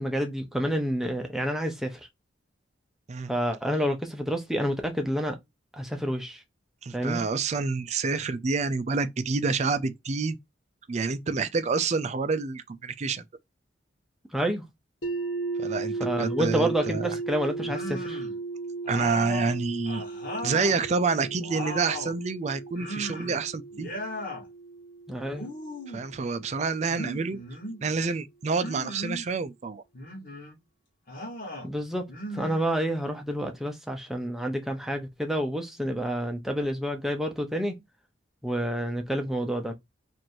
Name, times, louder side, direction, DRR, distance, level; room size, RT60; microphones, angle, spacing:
voice 1, 0.0-2.1 3.3-5.4 5.7-6.4 6.9-7.2 14.3-14.6 16.0-18.2 25.1-25.5 31.6-32.1 32.3-37.8 38.4-39.7, equal, ahead, 0.7 m, -29 dB
voice 2, 6.8-10.4 10.9-13.2 15.6-17.1 18.9-20.0 20.4-23.9 25.9-27.4 27.8-29.8, right 4 dB, 35° right, 0.4 m, -28 dB
sound 1, 15.0-26.9, right 3 dB, 80° left, 1.1 m, -36 dB
sound 2, 17.6-18.4 18.8-20.8 21.2-22.2 22.8-23.4 23.7-24.4 25.3-26.1 26.9-27.8 28.6-29.3 29.9-30.6 31.1-31.7 32.1-33.2, left 1 dB, 45° left, 1.4 m, -37 dB
3.0 x 2.6 x 4.3 m
head